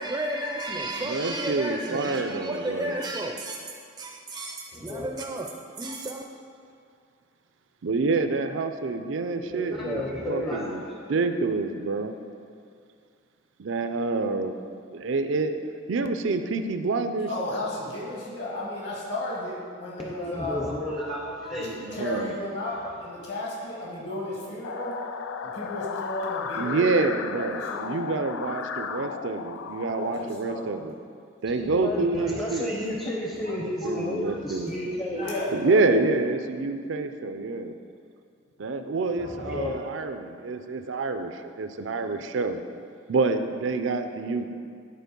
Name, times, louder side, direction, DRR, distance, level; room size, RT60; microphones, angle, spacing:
voice 1, 0.0-3.7 4.0-5.5 5.8-6.2, right 1 dB, 15° right, 2 dB, 0.4 m, -32 dB
voice 2, 1.0-2.9 7.8-10.8 11.1-12.1 13.6-14.5 14.9-15.6 15.9-17.3 21.6-22.3 26.6-30.9 31.4-32.7 33.4-34.7 35.5-37.7 38.6-42.6 43.1-44.5, right 3 dB, 70° right, 8 dB, 0.5 m, -27 dB
voice 3, 4.7-5.1 9.5-10.9 20.0-22.1 22.7-23.0 31.6-35.3 39.1-39.8, left 1 dB, 25° left, -2 dB, 0.7 m, -32 dB
voice 4, 17.3-20.7 21.9-25.0 25.4-26.9 27.3-27.9 29.8-30.9 35.2-35.8, left 2 dB, 60° left, -4 dB, 2.1 m, -34 dB
sound 1, 24.6-30.2, left 6 dB, 85° left, 0.4 m, -34 dB
10.5 x 4.2 x 5.3 m, 2.3 s
head